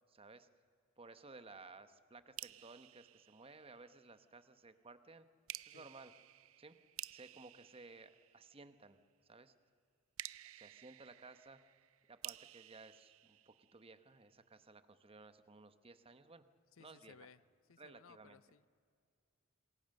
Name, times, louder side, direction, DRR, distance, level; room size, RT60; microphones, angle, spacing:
voice 1, 0.1-0.5 1.0-5.3 5.7-6.1 6.6-6.7 7.1-9.5 10.6-11.6 12.1-16.4 16.8-17.3 17.8-18.4, right 3 dB, 25° right, 10 dB, 1.0 m, -57 dB
sound 1, 2.4-4.1 5.5-8.8 10.2-14.1, right 15 dB, 75° right, 0.5 m, -53 dB
voice 2, 16.7-17.4 17.7-18.7, left 5 dB, 70° left, 17 dB, 0.6 m, -61 dB
27.5 x 21.0 x 6.6 m, 2.2 s
head